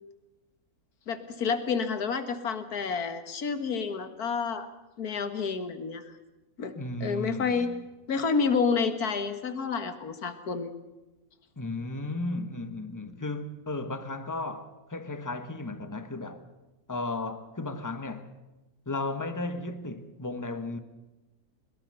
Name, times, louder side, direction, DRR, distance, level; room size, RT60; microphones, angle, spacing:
voice 1, 1.1-4.7 5.0-6.0 6.6-6.7 7.0-7.7 8.1-10.7, left 5 dB, 75° left, 2.1 m, -29 dB
voice 2, 6.7-7.8 11.6-16.5 16.9-18.3 18.9-20.8, left 2 dB, 15° left, 1.3 m, -35 dB
22.0 x 21.5 x 6.9 m
omnidirectional pair, 1.6 m